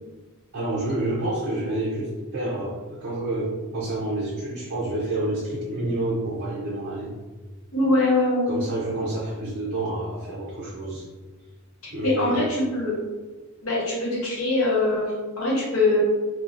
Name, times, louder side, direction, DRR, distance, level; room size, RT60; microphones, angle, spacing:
voice 1, 0.5-7.1 8.5-11.1 11.9-12.5, right 1 dB, 50° right, -6 dB, 0.5 m, -28 dB
voice 2, 7.7-8.6 11.8-13.1 13.6-16.0, left 2 dB, 85° left, -5 dB, 1.1 m, -23 dB
3.4 x 2.1 x 2.5 m, 1.3 s
head